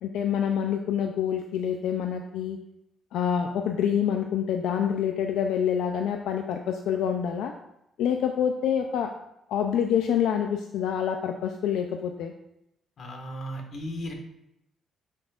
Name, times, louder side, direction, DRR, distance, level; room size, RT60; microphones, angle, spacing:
voice 1, 0.0-2.6 3.1-7.5 8.0-9.1 9.5-12.3, left 8 dB, 85° left, 5 dB, 0.5 m, -27 dB
voice 2, 13.0-14.1, equal, 55° left, 2 dB, 1.6 m, -35 dB
8.4 x 6.2 x 2.5 m, 0.83 s
cardioid pair, 90°, 0 cm